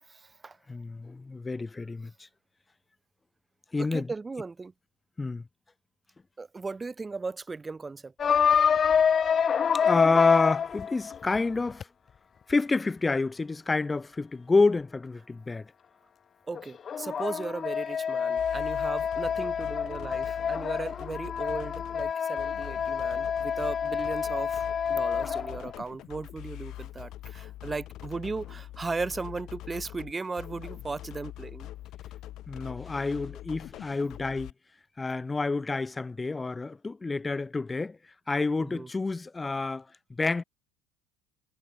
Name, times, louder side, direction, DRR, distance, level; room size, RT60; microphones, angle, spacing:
voice 1, 0.0-0.6 3.8-4.7 6.4-8.1 16.5-31.7 38.6-38.9, right 4 dB, 20° right, 5.5 m, -37 dB
voice 2, 0.7-2.1 3.7-4.1 5.2-5.4 9.7-11.9 12.5-15.7 32.5-34.5 35.0-38.0 38.3-40.4, left 3 dB, 20° left, 1.8 m, -28 dB
sound 1, 8.2-11.8 16.5-25.7, left 7 dB, 35° left, 0.7 m, -27 dB
sound 2, 18.4-34.5, left 14 dB, 55° left, 5.4 m, -43 dB
hypercardioid pair, 70°, 0 cm